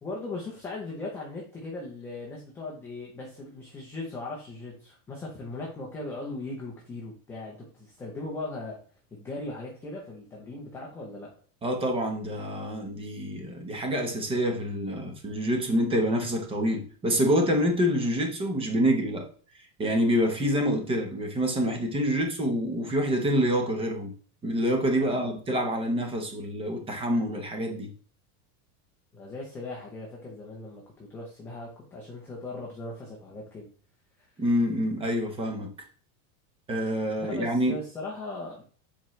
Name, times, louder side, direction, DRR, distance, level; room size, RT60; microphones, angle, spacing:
voice 1, 0.0-8.8 9.1-11.3 25.0-25.3 29.1-33.7 37.2-38.6, left 2 dB, 5° left, -3 dB, 0.4 m, -38 dB
voice 2, 11.6-19.3 19.8-24.1 24.4-27.9 34.4-35.7 36.7-37.8, equal, 10° right, 3 dB, 0.8 m, -27 dB
7.2 x 4.4 x 3.1 m, 0.42 s
supercardioid pair, 160°, 47 cm